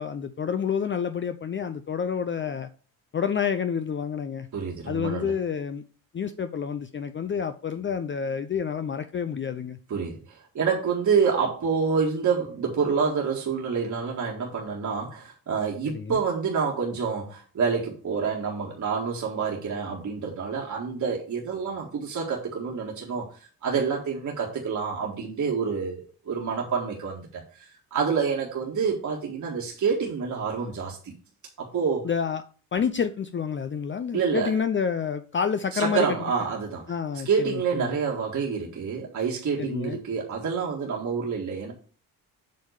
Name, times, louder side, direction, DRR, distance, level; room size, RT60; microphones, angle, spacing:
voice 1, 0.0-2.7 3.1-4.5 4.9-5.8 6.1-9.8 15.9-16.2 32.0-32.4 32.7-36.2 36.9-37.9 39.6-40.0, left 7 dB, 30° left, 9 dB, 0.6 m, -28 dB
voice 2, 4.5-5.3 9.9-31.1 31.6-32.1 34.1-34.5 35.7-36.9 37.3-41.7, right 5 dB, 50° right, -1 dB, 1.9 m, -28 dB
7.8 x 3.6 x 6.5 m, 0.39 s
cardioid pair, 75°, 37 cm